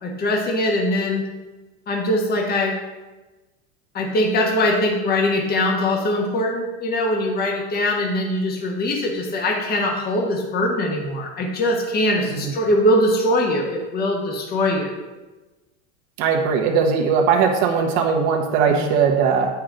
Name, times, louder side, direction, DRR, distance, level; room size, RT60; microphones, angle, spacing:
voice 1, 0.0-1.2 1.9-2.7 3.9-14.9 18.7-18.9, left 1 dB, 30° left, 0 dB, 1.4 m, -22 dB
voice 2, 16.2-19.5, right 6 dB, 65° right, 2 dB, 1.3 m, -19 dB
8.5 x 5.8 x 3.9 m, 1.2 s
supercardioid pair, 125°, 34 cm